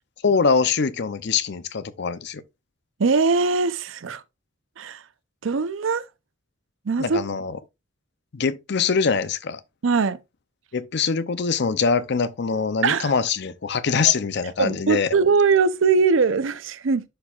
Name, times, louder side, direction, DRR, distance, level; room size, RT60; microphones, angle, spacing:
voice 1, 0.2-2.4 7.0-7.6 8.3-9.6 10.7-15.1, left 5 dB, 55° left, 0.6 m, -23 dB
voice 2, 3.0-4.2 4.8-5.0 5.4-6.0 6.9-7.2 9.8-10.2 12.8-13.1 14.0-14.1 14.6-17.0, right 4 dB, 75° right, 0.6 m, -21 dB
11.0 x 4.6 x 2.4 m
head